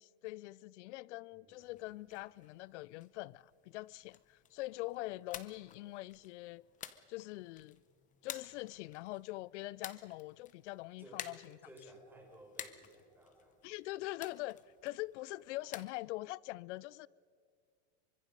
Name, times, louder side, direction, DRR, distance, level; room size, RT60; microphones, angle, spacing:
voice 1, 0.0-6.6 7.1-7.8 8.2-11.6 13.6-14.6 14.8-17.1, left 19 dB, 90° left, 0.5 m, -43 dB
voice 2, 1.3-1.9 11.0-11.3 11.6-13.6, right 1 dB, 5° right, 4.8 m, -57 dB
sound 1, 1.6-15.9, left 10 dB, 20° left, 0.8 m, -53 dB
27.0 x 24.5 x 5.3 m
supercardioid pair, 160°, 34 cm